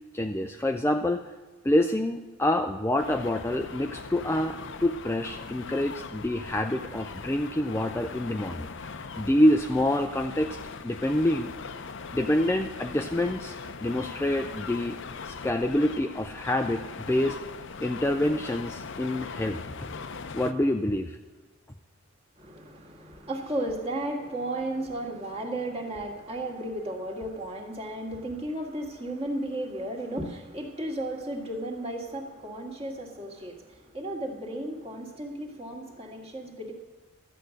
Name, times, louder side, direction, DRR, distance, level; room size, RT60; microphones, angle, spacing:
voice 1, 0.1-1.2 1.6-10.6 10.8-11.5 12.1-15.0 15.2-17.4 17.8-19.9 20.3-21.2, left 1 dB, 10° left, 5 dB, 0.4 m, -27 dB
sound 1, 3.0-20.5, left 5 dB, 55° left, 0.6 m, -40 dB
voice 2, 22.4-36.7, right 1 dB, 25° right, 0 dB, 1.8 m, -34 dB
13.0 x 8.6 x 6.4 m, 1.3 s
head